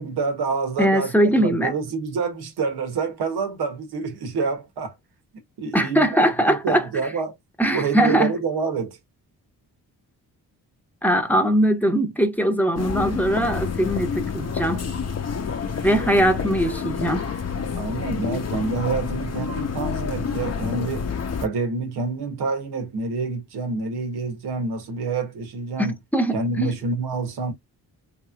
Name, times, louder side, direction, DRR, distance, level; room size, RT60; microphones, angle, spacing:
voice 1, 0.0-4.9 5.6-7.3 7.7-9.0 17.7-21.1 21.4-26.0 26.3-27.5, right 4 dB, 80° right, 1.3 m, -27 dB
voice 2, 0.8-1.7 5.7-6.9 7.6-8.3 11.0-14.8 15.8-17.2 26.1-26.8, equal, 5° left, 1.0 m, -21 dB
sound 1, 12.8-21.5, left 6 dB, 40° left, 0.8 m, -28 dB
3.3 x 3.0 x 2.3 m
cardioid pair, 65°, 39 cm